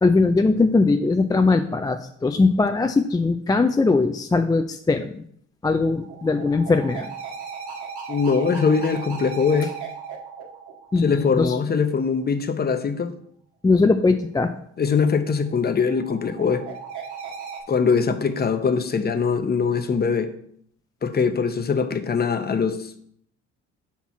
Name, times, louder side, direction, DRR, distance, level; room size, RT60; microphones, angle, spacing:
voice 1, 0.0-5.2 5.6-7.1 10.9-11.6 13.6-14.5, left 3 dB, 15° left, 6 dB, 0.3 m, -20 dB
sound 1, 5.8-11.6 15.2-17.6, right 6 dB, 70° right, 1.7 m, -37 dB
voice 2, 8.1-9.7 11.0-13.1 14.8-16.7 17.7-20.3 21.0-23.0, left 5 dB, 30° left, 9 dB, 0.7 m, -22 dB
5.8 x 4.3 x 5.8 m, 0.66 s
cardioid pair, 90°, 30 cm